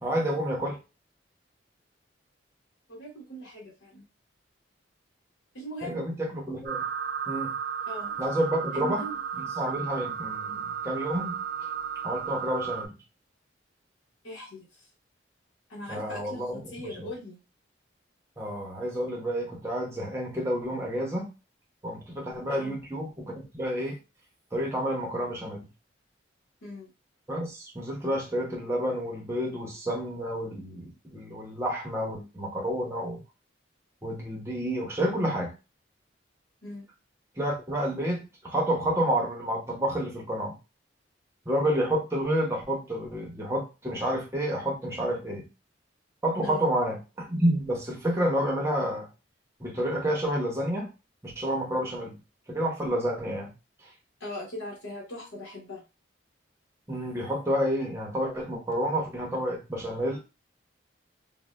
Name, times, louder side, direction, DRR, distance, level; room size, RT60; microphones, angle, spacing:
voice 1, 0.0-0.8 5.8-6.8 7.3-7.6 8.2-9.0 9.4-11.4 12.0-12.9 15.9-17.1 18.4-21.3 21.8-24.0 24.5-25.7 27.3-33.2 34.0-35.5 37.4-40.5 41.5-45.4 46.2-49.1 49.6-50.9 51.2-52.2 52.5-53.5 56.9-60.2, equal, 15° right, -1 dB, 0.7 m, -29 dB
voice 2, 2.9-4.0 5.5-6.0 7.9-8.2 8.7-9.2 14.2-14.9 15.7-17.4 22.5-22.8 26.6-26.9 36.6-36.9 46.4-46.7 54.2-55.8, equal, 85° left, -2 dB, 0.9 m, -40 dB
sound 1, 6.6-12.9, right 7 dB, 55° right, 0.4 m, -34 dB
3.3 x 2.0 x 2.2 m, 0.30 s
head